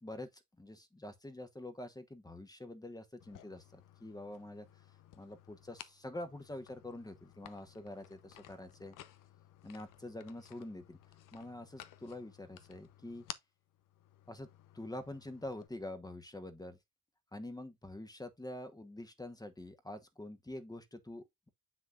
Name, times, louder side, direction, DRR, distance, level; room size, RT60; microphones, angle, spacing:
voice 1, 0.0-4.7 5.1-9.0 9.6-11.0 11.3-13.2 14.3-14.5 14.7-16.8 17.3-21.5, left 1 dB, 10° left, 1.2 m, -46 dB
sound 1, 3.2-15.7, left 12 dB, 90° left, 0.8 m, -56 dB
7.3 x 6.0 x 2.5 m
cardioid pair, 100°, 31 cm